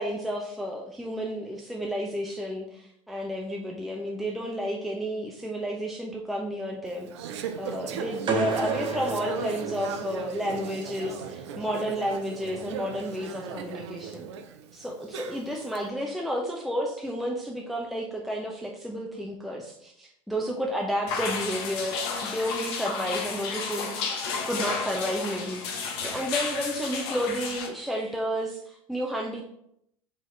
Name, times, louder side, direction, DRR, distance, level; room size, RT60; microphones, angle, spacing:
voice 1, 0.0-7.1 7.6-14.3 14.7-29.4, equal, ahead, -1 dB, 0.6 m, -31 dB
Conversation / Chatter, 6.9-15.8, right 7 dB, 75° right, 0.5 m, -37 dB
sound 1, 8.3-10.4, right 4 dB, 35° right, 0.9 m, -31 dB
sound 2, 21.1-27.7, left 5 dB, 65° left, 0.8 m, -32 dB
4.6 x 2.8 x 3.1 m, 0.74 s
hypercardioid pair, 80°, 15 cm